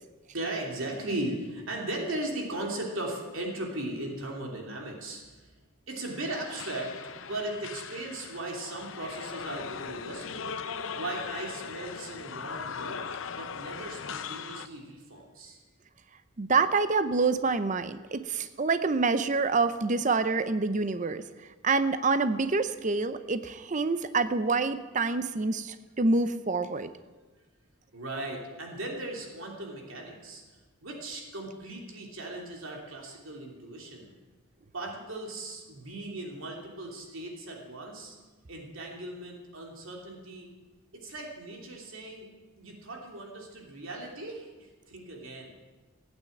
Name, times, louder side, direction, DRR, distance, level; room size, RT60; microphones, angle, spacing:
voice 1, 0.3-5.5 5.9-6.9 7.3-10.6 10.9-13.0 13.3-15.6 27.9-30.4 30.8-34.1 34.7-38.2 38.5-40.5 40.9-42.3 42.6-45.6, right 1 dB, 70° right, 0 dB, 2.9 m, -37 dB
sound 1, 6.1-14.7, left 6 dB, 65° left, 0.7 m, -39 dB
voice 2, 16.4-21.2 21.6-26.9, right 4 dB, 35° right, 11 dB, 0.6 m, -27 dB
16.0 x 9.1 x 8.6 m, 1.3 s
head